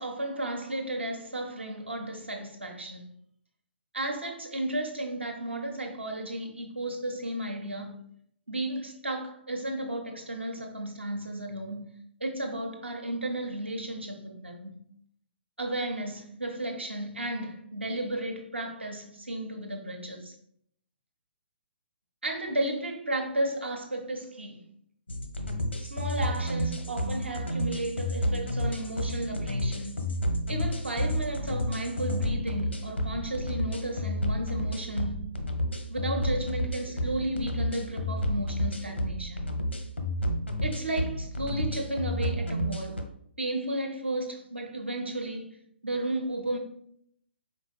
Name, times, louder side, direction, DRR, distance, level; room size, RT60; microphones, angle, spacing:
voice 1, 0.0-3.1 3.9-7.9 8.5-11.8 12.2-14.8 15.6-20.3 22.2-24.6 25.8-30.0 30.5-35.3 35.9-39.4 40.6-43.0 43.4-45.6 45.8-46.6, right 1 dB, 75° right, 1.0 m, -33 dB
sound 1, 25.1-43.0, left 1 dB, 80° left, 0.8 m, -30 dB
5.1 x 3.8 x 2.3 m
figure-of-eight pair, 125°, 6 cm